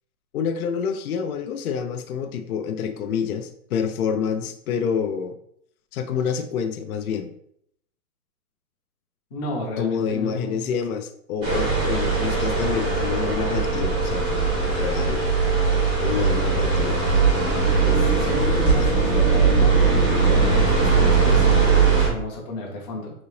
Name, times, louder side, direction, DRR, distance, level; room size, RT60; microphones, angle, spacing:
voice 1, 0.3-5.4 5.9-7.3 9.8-15.2 16.0-17.0, left 7 dB, 75° left, 7 dB, 0.5 m, -28 dB
voice 2, 9.3-10.7 17.8-23.1, left 1 dB, 20° left, -1 dB, 0.7 m, -32 dB
sound 1, 11.4-22.1, right 4 dB, 10° right, 0.7 m, -20 dB
3.9 x 2.8 x 3.1 m, 0.71 s
hypercardioid pair, 155°, 44 cm